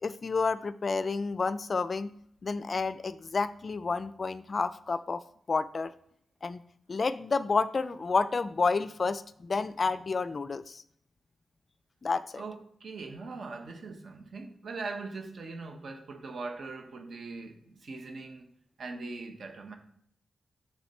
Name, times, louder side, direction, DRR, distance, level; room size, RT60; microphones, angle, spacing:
voice 1, 0.0-2.1 2.4-5.2 5.5-5.9 6.4-6.6 6.9-10.8 12.0-12.2, left 4 dB, 40° left, 0.3 m, -30 dB
voice 2, 12.4-18.5 18.8-19.7, right 3 dB, 55° right, 1.2 m, -41 dB
7.1 x 6.5 x 4.3 m
wide cardioid pair, 135°, 0 cm